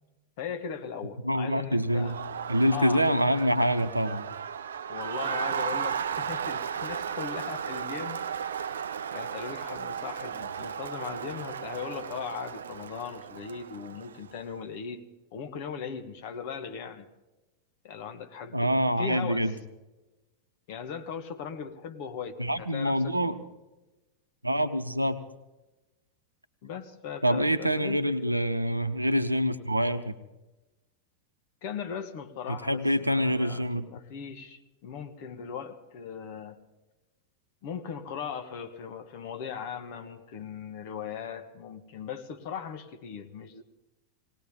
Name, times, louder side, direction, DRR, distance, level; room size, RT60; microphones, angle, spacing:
voice 1, 0.4-2.2 2.7-3.0 4.9-8.6 9.1-15.0 15.3-17.1 17.8-19.5 20.7-23.2 26.6-28.3 31.6-36.6 37.6-43.6, left 7 dB, 50° left, 7 dB, 1.5 m, -39 dB
voice 2, 1.2-2.2 2.5-4.2 18.5-19.5 22.4-23.4 24.4-25.2 27.2-30.1 32.5-33.9, equal, 85° right, 12 dB, 0.8 m, -26 dB
Crowd, 1.8-14.3, right 7 dB, 65° right, 0.5 m, -35 dB
19.5 x 19.0 x 3.7 m, 1.1 s
figure-of-eight pair, 90°, 0 cm